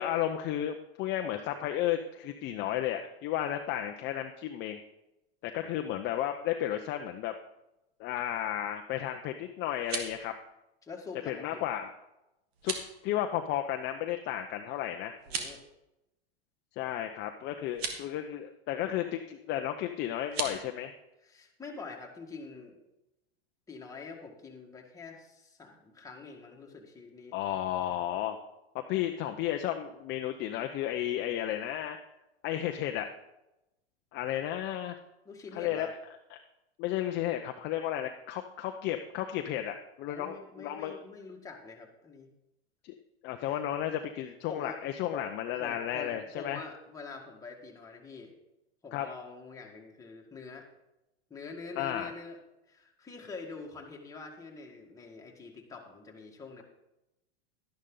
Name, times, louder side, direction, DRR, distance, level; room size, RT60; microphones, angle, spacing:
voice 1, 0.0-4.8 5.4-7.3 8.0-10.3 11.3-11.9 12.6-12.7 13.0-15.2 16.8-20.9 27.3-28.4 28.7-32.0 32.4-33.1 34.1-34.9 35.5-35.9 36.8-41.0 42.8-42.9 43.2-46.6 48.9-49.1 51.8-52.1, left 11 dB, 35° left, 5 dB, 0.7 m, -33 dB
sound 1, 9.6-10.2 12.5-12.9 15.2-15.6 17.7-18.0 20.2-20.6, right 5 dB, 75° right, 1.9 m, -36 dB
voice 2, 10.8-11.7 15.2-15.6 21.2-22.8 23.7-27.3 35.2-35.9 40.1-42.3 43.4-43.6 44.5-44.8 45.1-45.2 45.6-48.3 48.8-50.7 51.3-52.4 52.7-56.6, left 4 dB, 10° left, 0 dB, 1.8 m, -45 dB
11.5 x 10.5 x 3.8 m, 0.93 s
supercardioid pair, 130°, 31 cm